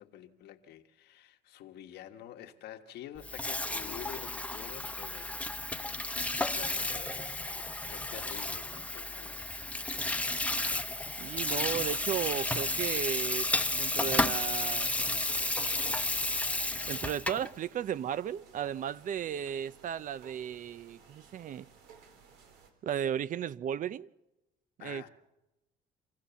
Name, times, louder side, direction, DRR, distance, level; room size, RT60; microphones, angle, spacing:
voice 1, 0.0-9.5 24.8-25.1, left 11 dB, 75° left, 1.5 m, -48 dB
Water tap faucet / Sink (filling or washing), 3.2-17.5, left 2 dB, 10° left, 0.9 m, -32 dB
voice 2, 11.2-16.1 16.9-21.7 22.8-24.1 24.8-25.0, right 9 dB, 50° right, 0.6 m, -35 dB
sound 1, 11.3-22.7, right 6 dB, 90° right, 3.8 m, -57 dB
26.0 x 16.0 x 7.0 m
cardioid pair, 110°, 17 cm